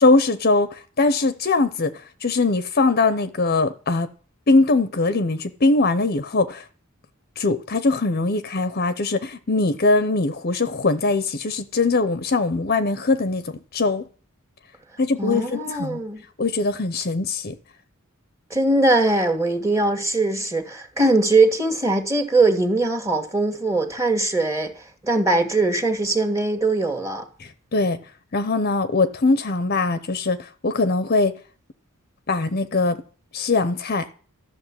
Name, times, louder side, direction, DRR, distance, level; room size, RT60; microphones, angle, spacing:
voice 1, 0.0-1.9 2.2-4.1 4.5-6.6 7.4-14.0 15.0-16.0 16.4-17.6 27.4-28.0 28.3-31.4 32.3-33.0 33.3-34.1, left 3 dB, 45° left, 0.9 m, -21 dB
voice 2, 15.2-16.2 18.5-24.7 25.0-27.2, right 2 dB, 15° right, 1.9 m, -21 dB
13.5 x 6.7 x 9.8 m
head